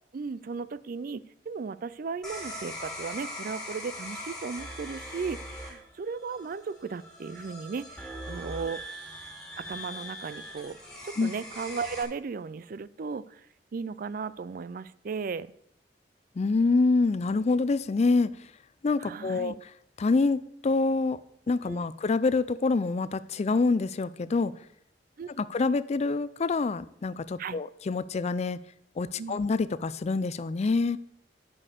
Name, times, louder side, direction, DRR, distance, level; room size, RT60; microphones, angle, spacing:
voice 1, 0.1-8.8 9.6-10.8 11.0-13.4 13.7-15.5 19.0-19.6 21.7-21.8 25.2-25.5 27.4-27.6 29.2-29.4, right 5 dB, 55° right, 17 dB, 0.4 m, -36 dB
sound 1, 2.2-12.0, equal, 5° left, 2.3 m, -41 dB
voice 2, 16.4-18.3 18.8-19.5 20.0-21.2 21.5-24.5 25.4-28.6 29.0-31.0, left 3 dB, 40° left, 17 dB, 0.4 m, -26 dB
11.0 x 5.4 x 6.7 m, 0.72 s
head